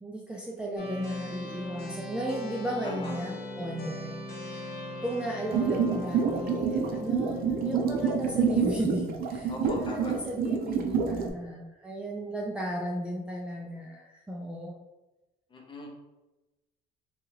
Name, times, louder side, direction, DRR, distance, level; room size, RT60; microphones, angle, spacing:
voice 1, 0.0-4.7 5.0-14.7, right 1 dB, 5° right, -3 dB, 0.4 m, -35 dB
sound 1, 0.8-10.1, left 1 dB, 70° left, 0.8 m, -40 dB
voice 2, 2.8-3.3 9.5-10.1 15.5-15.9, left 2 dB, 30° left, 0 dB, 0.7 m, -39 dB
sound 2, 5.5-11.3, right 6 dB, 60° right, 0.5 m, -27 dB
3.0 x 2.3 x 2.8 m, 1.0 s
cardioid pair, 110°, 17 cm